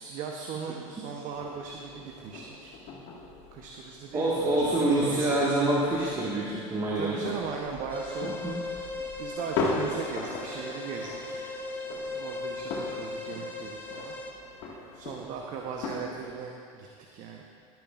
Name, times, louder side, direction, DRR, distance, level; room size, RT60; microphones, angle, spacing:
voice 1, 0.0-2.7 3.5-5.3 6.9-8.6 9.2-11.4 11.9-14.1 14.9-16.9 17.1-17.4, right 6 dB, 50° right, 1 dB, 0.9 m, -38 dB
sound 1, 1.3-16.3, left 3 dB, 65° left, 1.9 m, -39 dB
voice 2, 4.1-7.2 8.4-8.5, right 2 dB, 20° right, -7 dB, 1.7 m, -26 dB
sound 2, 7.9-14.3, left 2 dB, 10° left, 1.4 m, -38 dB
18.0 x 9.2 x 2.5 m, 2.4 s
hypercardioid pair, 100°, 17 cm